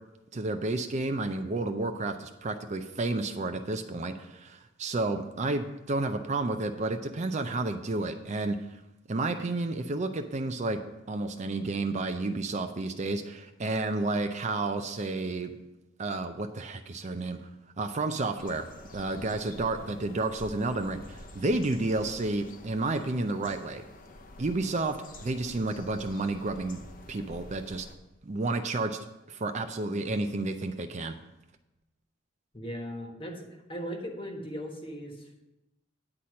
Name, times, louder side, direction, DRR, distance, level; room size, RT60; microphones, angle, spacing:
voice 1, 0.3-8.8 9.1-10.8 11.1-15.5 16.0-17.4 17.8-18.7 18.9-23.8 24.4-26.8 27.1-27.9 28.2-29.0 29.3-31.2, right 2 dB, 35° right, 7 dB, 0.5 m, -31 dB
sound 1, 18.4-27.9, left 2 dB, 45° left, 0.8 m, -48 dB
voice 2, 32.5-35.4, equal, 25° left, 2 dB, 1.3 m, -38 dB
9.7 x 4.3 x 7.5 m, 0.97 s
head